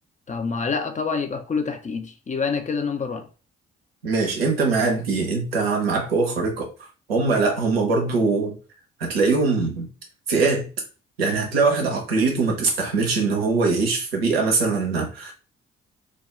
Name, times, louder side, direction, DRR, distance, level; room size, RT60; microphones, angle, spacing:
voice 1, 0.3-3.3, left 5 dB, 25° left, 0.5 m, -27 dB
voice 2, 4.0-6.7 7.1-8.5 9.0-9.9 10.3-10.6 11.2-15.3, right 4 dB, 90° right, 0.6 m, -22 dB
2.3 x 2.2 x 3.0 m
figure-of-eight pair, 40°, 29 cm